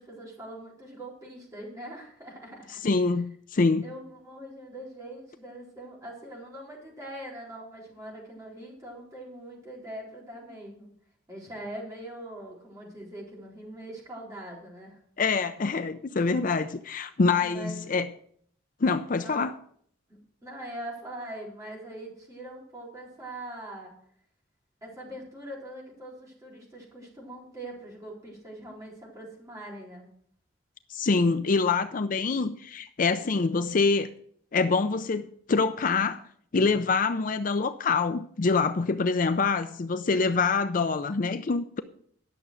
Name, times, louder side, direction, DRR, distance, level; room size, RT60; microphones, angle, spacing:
voice 1, 0.0-2.7 3.8-10.9 11.3-15.0 17.4-18.0 19.2-19.5 20.4-23.9 24.8-30.1, right 1 dB, 15° right, 4.0 m, -42 dB
voice 2, 2.8-3.8 15.2-18.1 18.8-19.6 30.9-34.1 34.5-36.2 36.5-41.8, left 4 dB, 45° left, 0.5 m, -25 dB
11.0 x 6.9 x 6.3 m
head